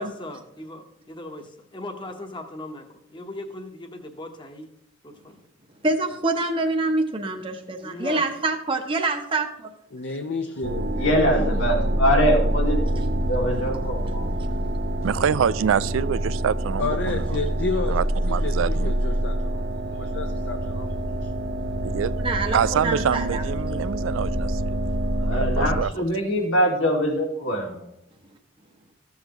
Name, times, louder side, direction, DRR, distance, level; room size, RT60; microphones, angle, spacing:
voice 1, 0.0-2.8 3.1-4.7 5.0-5.4 7.8-8.3, left 1 dB, 25° left, 5 dB, 1.1 m, -38 dB
voice 2, 5.8-9.5 22.2-23.8, right 2 dB, 25° right, 3 dB, 0.8 m, -26 dB
voice 3, 9.9-11.5 16.8-21.3, left 4 dB, 60° left, 4 dB, 0.7 m, -32 dB
sound 1, 10.6-25.8, right 1 dB, 60° right, 0.7 m, -26 dB
voice 4, 10.9-14.3 25.2-27.9, equal, 85° left, 0 dB, 2.4 m, -23 dB
voice 5, 15.0-17.2 17.9-18.9 21.8-22.1 22.5-24.7 25.3-25.9, right 7 dB, 90° right, 18 dB, 0.3 m, -25 dB
14.0 x 7.3 x 3.0 m, 0.81 s
head